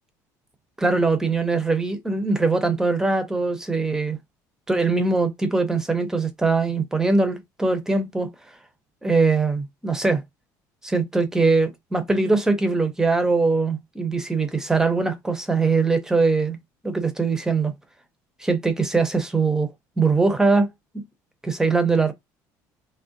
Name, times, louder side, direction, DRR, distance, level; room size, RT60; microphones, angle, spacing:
voice 1, 0.8-4.2 4.7-8.3 9.0-10.2 10.8-16.6 16.8-17.7 18.4-19.7 20.0-20.7 21.4-22.1, right 3 dB, 10° right, 0.6 m, -21 dB
3.4 x 2.1 x 2.5 m
cardioid pair, 135°, 7 cm